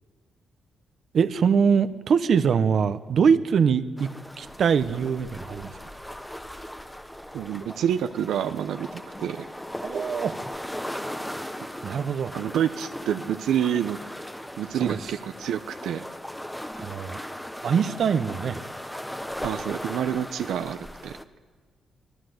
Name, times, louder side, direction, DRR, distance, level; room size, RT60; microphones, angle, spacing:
voice 1, 1.1-4.1 4.4-5.8 9.8-10.3 11.8-12.3 14.7-15.1 16.8-17.2 17.6-18.6, right 6 dB, 55° right, 12 dB, 1.1 m, -23 dB
sound 1, 4.0-21.2, equal, 5° left, 1.1 m, -38 dB
voice 2, 7.3-8.9 9.2-9.4 12.3-14.0 14.6-16.1 19.4-21.2, right 9 dB, 85° right, 8 dB, 0.8 m, -28 dB
24.5 x 19.5 x 8.1 m, 1.5 s
cardioid pair, 120°, 0 cm